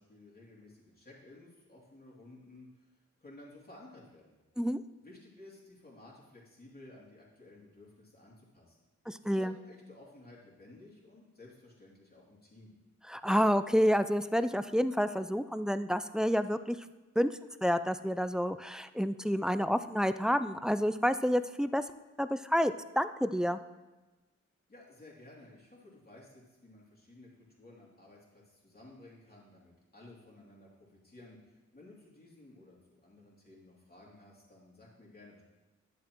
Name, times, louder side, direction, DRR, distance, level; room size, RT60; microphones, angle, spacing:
voice 1, 0.0-2.7 3.2-4.4 5.0-8.8 9.2-12.7 24.7-27.3 27.6-35.4, left 2 dB, 30° left, -5 dB, 2.9 m, -55 dB
voice 2, 9.1-9.5 13.1-16.8 17.2-17.3 17.6-21.8 22.2-23.6, equal, ahead, 12 dB, 0.3 m, -29 dB
10.5 x 7.3 x 3.0 m, 1.2 s
cardioid pair, 60°, 30 cm